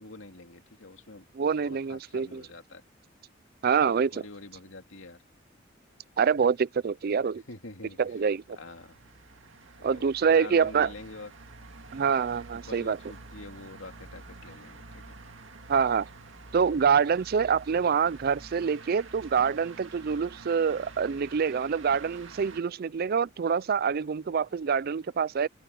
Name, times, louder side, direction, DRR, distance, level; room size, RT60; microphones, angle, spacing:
voice 1, 0.0-1.3 1.6-2.8 3.8-5.2 7.5-8.0 8.5-9.0 9.8-11.3 12.5-15.1, left 2 dB, 80° left, 2.6 m, -46 dB
voice 2, 1.4-2.4 3.6-4.2 6.2-7.4 8.0-8.6 9.8-10.9 11.9-13.0 15.7-16.1 16.5-25.5, right 6 dB, 50° right, 0.4 m, -26 dB
sound 1, 8.1-22.6, right 3 dB, 80° right, 2.0 m, -48 dB
open air
head